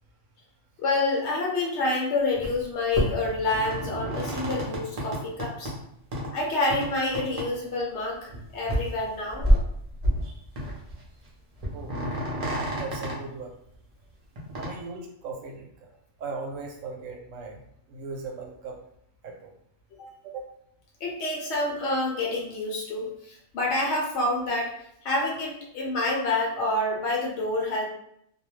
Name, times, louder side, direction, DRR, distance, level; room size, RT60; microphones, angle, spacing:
voice 1, 0.8-5.7 6.3-9.4 20.0-20.1 21.0-24.7 25.0-27.9, left 2 dB, 65° left, -1 dB, 0.9 m, -28 dB
sound 1, 2.4-2.6 2.9-5.7 6.1-6.3 6.7-6.9 7.1-7.5 7.8-7.9 8.3-8.4 8.6-9.0 9.3-10.3 10.6-11.0 11.2-11.3 11.6-13.1 14.4-14.7, equal, 40° right, 0.6 m, -28 dB
voice 2, 12.8-13.5 14.5-15.9 16.2-17.6 17.9-18.8 19.2-19.5 20.2-20.5, right 4 dB, 80° right, 1 dB, 1.0 m, -38 dB
2.3 x 2.1 x 3.0 m, 0.72 s
omnidirectional pair, 1.3 m